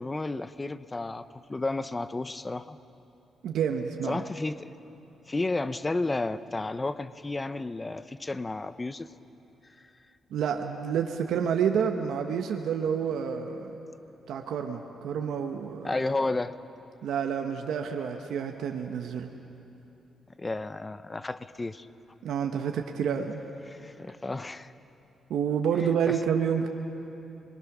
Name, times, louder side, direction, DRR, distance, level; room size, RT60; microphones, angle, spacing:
voice 1, 0.0-2.8 4.1-4.7 5.3-9.1 15.8-16.5 20.4-21.9 23.7-24.7 26.1-26.2, left 2 dB, 20° left, 13 dB, 0.6 m, -32 dB
voice 2, 3.4-4.2 10.3-13.8 14.3-16.0 17.0-19.3 22.2-23.4 25.3-26.7, right 7 dB, 90° right, 3 dB, 1.1 m, -29 dB
28.0 x 22.0 x 6.1 m, 3.0 s
cardioid pair, 105°, 0 cm